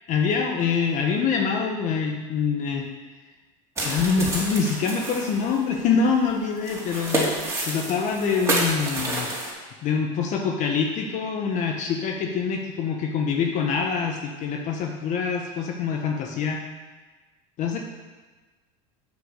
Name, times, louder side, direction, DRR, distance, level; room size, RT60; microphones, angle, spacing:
voice 1, 0.1-2.8 3.8-9.3 9.5-16.6 17.6-17.8, left 5 dB, 50° left, 2 dB, 1.2 m, -25 dB
sound 1, 3.8-9.5, right 1 dB, 15° right, 3.5 m, -29 dB
8.4 x 7.7 x 6.6 m, 1.3 s
supercardioid pair, 105°, 16 cm